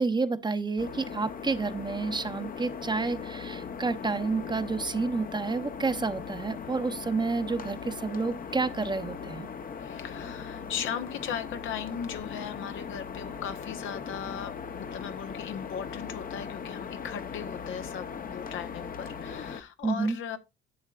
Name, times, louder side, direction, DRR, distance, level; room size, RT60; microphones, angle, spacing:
voice 1, 0.0-9.5 19.8-20.2, right 4 dB, 20° right, 0.8 m, -29 dB
sound 1, 0.8-19.6, left 6 dB, 45° left, 0.9 m, -39 dB
voice 2, 9.8-20.4, left 8 dB, 80° left, 1.2 m, -38 dB
11.0 x 7.1 x 2.5 m
cardioid pair, 90°, 20 cm